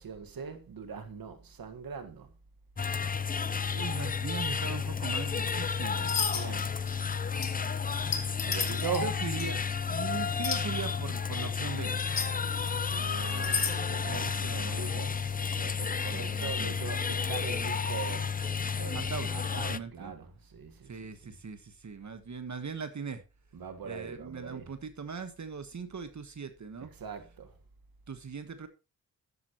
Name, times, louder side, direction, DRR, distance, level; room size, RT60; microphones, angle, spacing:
voice 1, 0.0-2.3 6.3-6.7 8.5-9.3 12.8-20.9 21.2-21.3 23.5-24.6 26.8-27.5, right 6 dB, 80° right, 1.7 m, -41 dB
sound 1, 2.8-19.8, left 6 dB, 25° left, 0.6 m, -32 dB
voice 2, 3.7-6.2 9.0-12.0 14.0-15.0 16.1-16.8 18.9-19.3 19.7-20.1 20.8-23.2 23.8-26.9 28.1-28.7, right 5 dB, 55° right, 1.4 m, -40 dB
sound 2, 6.1-6.6 6.9-7.1 7.4-7.5 8.1-9.0 9.4-9.5 10.4-10.6 12.0-12.3 13.3-13.8, left 6 dB, 70° left, 2.1 m, -31 dB
12.0 x 9.5 x 3.0 m
cardioid pair, 60°, 35 cm